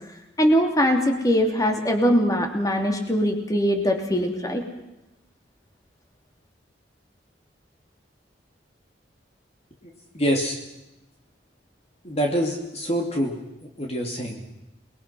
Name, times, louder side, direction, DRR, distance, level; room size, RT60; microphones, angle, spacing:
voice 1, 0.4-4.6, equal, 20° left, 3 dB, 3.0 m, -21 dB
voice 2, 9.8-10.6 12.0-14.4, equal, 35° left, 1 dB, 2.6 m, -26 dB
29.0 x 21.5 x 5.8 m, 0.92 s
head